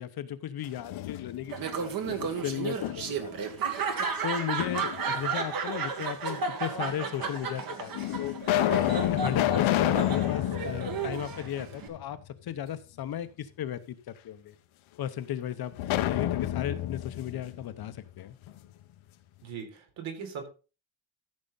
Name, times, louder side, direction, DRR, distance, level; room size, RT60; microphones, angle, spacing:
voice 1, 0.0-3.5 4.2-7.9 8.2-8.3 8.8-14.0 14.2-14.5 15.0-18.4, left 10 dB, 50° left, 11 dB, 0.9 m, -35 dB
Tampon-Fermeture, 0.6-1.6 2.1-3.3 4.6-5.4 6.3-6.4 7.2-7.3 7.9-12.0 12.4-12.5 15.8-18.6, left 14 dB, 80° left, 1.1 m, -30 dB
Laughter, 1.5-11.9, right 5 dB, 45° right, 1.8 m, -33 dB
voice 2, 19.4-20.5, right 6 dB, 75° right, 4 dB, 3.9 m, -39 dB
14.0 x 6.6 x 4.0 m, 0.33 s
cardioid pair, 180°, 47 cm